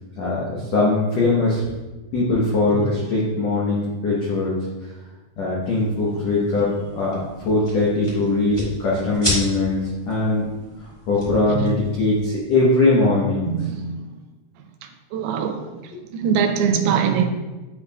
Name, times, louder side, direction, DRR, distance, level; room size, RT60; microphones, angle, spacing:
voice 1, 0.2-1.6 2.1-4.6 5.4-10.5 11.1-13.5, left 2 dB, 80° left, 1.5 m, -21 dB
sound 1, 5.6-12.3, equal, 35° left, 0.4 m, -33 dB
voice 2, 13.5-14.0 15.1-15.8 16.1-17.3, right 7 dB, 80° right, 2.5 m, -22 dB
11.5 x 4.3 x 2.3 m
omnidirectional pair, 4.7 m